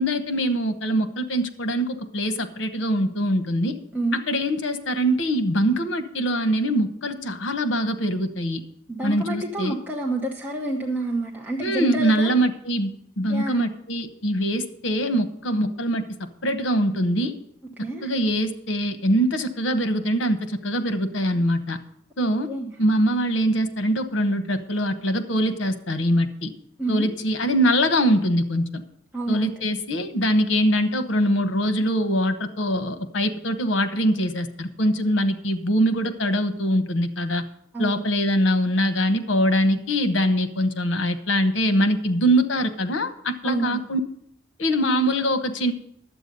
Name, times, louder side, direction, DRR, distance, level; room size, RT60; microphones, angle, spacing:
voice 1, 0.0-3.7 4.3-8.6 9.0-9.8 11.6-17.4 18.0-21.8 22.2-22.5 22.8-26.5 26.9-28.8 29.3-37.4 37.8-44.0 44.6-45.7, equal, 80° left, 9 dB, 0.9 m, -23 dB
voice 2, 8.9-12.3 13.3-13.7 17.8-18.1 22.5-22.7 26.8-27.1 29.1-29.7 37.7-38.1 43.4-43.9, right 2 dB, 10° right, -2 dB, 0.9 m, -28 dB
11.0 x 8.0 x 5.3 m, 0.72 s
head